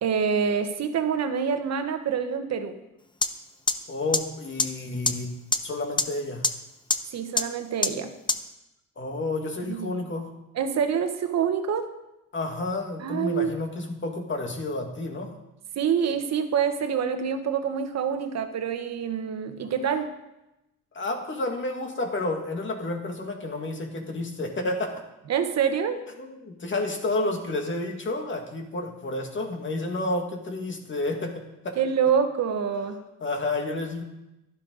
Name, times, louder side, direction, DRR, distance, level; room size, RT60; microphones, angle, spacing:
voice 1, 0.0-2.8 7.1-8.1 9.7-9.9 10.5-11.9 13.0-13.5 15.8-20.1 25.3-26.0 31.8-33.0, right 7 dB, 60° right, 8 dB, 1.3 m, -26 dB
sound 1, 3.2-3.3 3.7-3.8 4.1-4.2 4.6-4.7 5.1-5.2 5.5-5.6 6.0-6.1 6.4-6.5 6.9-7.0 7.4-7.5 7.8-7.9 8.3-8.4, left 3 dB, 15° left, 0.7 m, -21 dB
voice 2, 3.9-5.4 5.6-6.5 9.0-10.3 12.3-15.3 19.6-19.7 20.9-25.0 26.2-31.8 33.2-34.0, left 2 dB, 40° left, 3 dB, 2.2 m, -30 dB
12.0 x 11.0 x 4.0 m, 0.93 s
cardioid pair, 90°, 30 cm